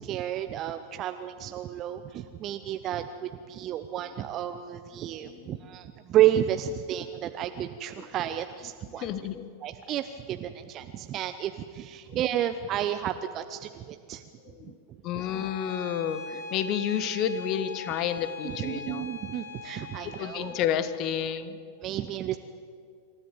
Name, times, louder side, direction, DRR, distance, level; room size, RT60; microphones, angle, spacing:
voice 1, 0.0-9.1 9.6-14.2 14.6-15.2 18.4-20.6 21.8-22.4, right 11 dB, 35° right, 9 dB, 0.8 m, -31 dB
voice 2, 5.2-5.6 8.0-8.1 9.0-9.5 14.5-14.8 15.0-19.1 20.2-21.6, left 9 dB, 40° left, 12 dB, 1.4 m, -30 dB
Bowed string instrument, 15.1-20.7, left 3 dB, 70° left, 6.6 m, -41 dB
27.0 x 14.0 x 8.9 m, 2.2 s
figure-of-eight pair, 90°, 0 cm